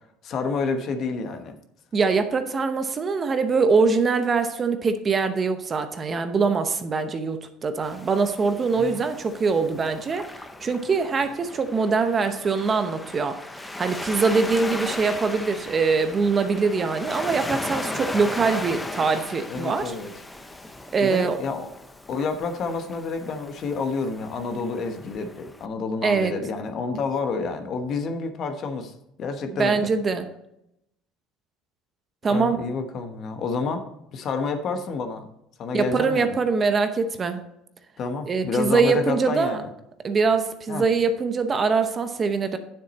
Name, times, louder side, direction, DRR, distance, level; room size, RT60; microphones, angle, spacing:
voice 1, 0.2-1.6 8.8-9.0 19.5-20.1 21.0-21.7 22.1-28.9 29.2-29.9 32.3-33.8 34.1-35.3 35.6-36.4 38.0-39.7 40.7-40.8, left 4 dB, 45° left, 6 dB, 1.1 m, -29 dB
voice 2, 1.9-10.3 10.6-13.3 13.8-19.9 20.9-21.4 26.0-26.3 29.5-30.3 32.2-32.6 35.7-37.4 38.3-39.6 40.0-42.6, right 4 dB, 25° right, 8 dB, 0.8 m, -23 dB
Waves surf, 7.8-25.7, left 2 dB, 10° left, 0.7 m, -37 dB
9.4 x 7.4 x 4.1 m, 0.82 s
cardioid pair, 130°, 0 cm